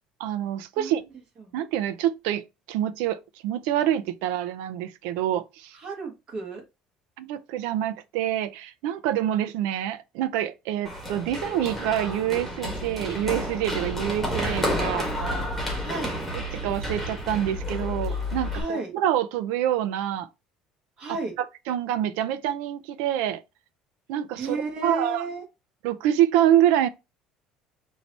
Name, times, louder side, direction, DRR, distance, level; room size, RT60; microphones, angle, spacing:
voice 1, 0.2-1.0 1.5-5.8 7.2-15.1 16.3-20.3 21.1-23.4 24.1-25.3 25.8-26.9, right 11 dB, 90° right, 0.5 m, -26 dB
voice 2, 0.8-1.1 1.4-1.5 5.7-6.6 15.8-16.2 18.5-18.9 21.0-21.3 24.4-25.4, right 3 dB, 35° right, 1.8 m, -32 dB
Run, 10.8-18.6, left 1 dB, ahead, 1.7 m, -30 dB
4.6 x 2.8 x 4.0 m
cardioid pair, 155°, 2 cm